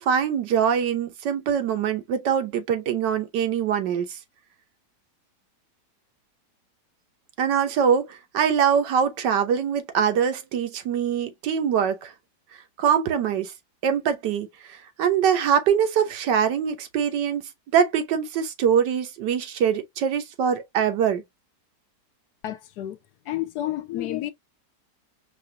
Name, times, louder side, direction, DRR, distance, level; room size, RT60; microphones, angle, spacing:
voice 1, 0.0-4.2 7.4-12.1 12.8-13.5 13.8-17.4 17.7-21.2, right 8 dB, 90° right, 1.5 m, -23 dB
voice 2, 22.4-23.0 23.3-24.3, left 13 dB, 75° left, 1.2 m, -30 dB
4.8 x 2.5 x 2.7 m
omnidirectional pair, 1.8 m